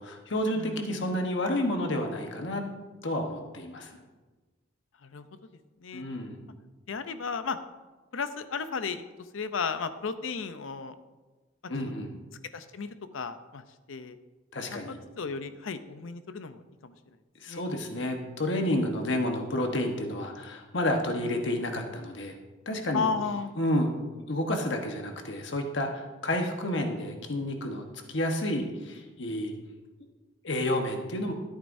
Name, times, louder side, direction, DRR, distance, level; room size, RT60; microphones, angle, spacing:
voice 1, 0.0-2.6 3.0-3.9 5.9-6.4 11.7-12.2 14.5-15.0 17.4-22.3 22.7-23.1 23.6-23.9 24.3-29.5 30.4-31.3, left 1 dB, 65° left, 3 dB, 1.2 m, -30 dB
voice 2, 0.6-1.0 5.0-5.2 5.8-6.0 6.9-7.6 8.1-9.0 9.3-11.0 12.5-13.6 13.9-14.2 14.7-14.8 15.2-16.9 17.5-17.6 21.2-21.4 22.9-23.5, left 5 dB, 85° left, 11 dB, 0.6 m, -34 dB
14.0 x 8.9 x 2.7 m, 1.2 s
head